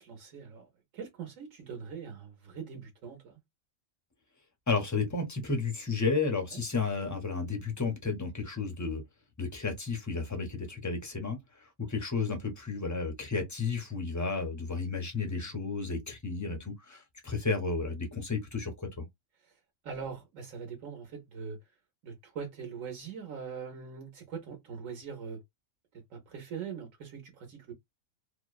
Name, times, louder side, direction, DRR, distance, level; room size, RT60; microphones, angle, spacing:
voice 1, 0.0-3.4 6.5-6.6 19.8-21.6 22.0-25.4 26.1-27.7, right 6 dB, 75° right, 1.2 m, -42 dB
voice 2, 4.7-9.0 9.4-11.4 11.9-19.1, left 4 dB, 30° left, 0.3 m, -32 dB
2.8 x 2.0 x 2.3 m
omnidirectional pair, 1.4 m